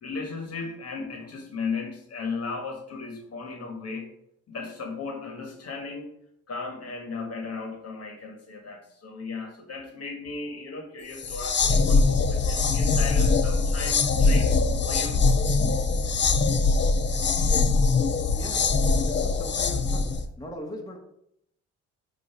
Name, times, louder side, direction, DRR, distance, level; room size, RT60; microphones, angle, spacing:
voice 1, 0.0-4.1 4.5-6.1 6.5-14.6 14.8-15.2, left 4 dB, 55° left, 3 dB, 1.7 m, -36 dB
sound 1, 11.2-20.2, left 4 dB, 40° left, 0.7 m, -22 dB
voice 2, 18.3-20.1 20.4-21.0, left 1 dB, 10° left, -1 dB, 1.9 m, -39 dB
8.5 x 3.1 x 5.9 m, 0.74 s
cardioid pair, 90°, 30 cm